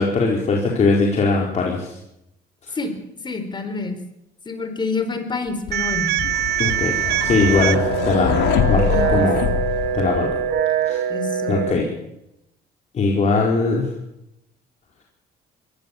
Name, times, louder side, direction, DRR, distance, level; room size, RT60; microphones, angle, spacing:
voice 1, 0.0-1.9 6.6-8.4 8.7-9.4 9.9-10.3 10.9-11.0 11.5-11.9 12.9-13.9, left 3 dB, 45° left, -1 dB, 4.5 m, -20 dB
voice 2, 3.2-4.0 4.4-6.1 8.9-9.3 11.1-11.7, left 4 dB, 25° left, 8 dB, 4.5 m, -27 dB
sound 1, 5.7-10.6, left 9 dB, 80° left, 2.6 m, -24 dB
sound 2, 5.7-11.7, right 10 dB, 75° right, 1.1 m, -23 dB
23.5 x 18.5 x 7.3 m, 0.83 s
cardioid pair, 110°, 17 cm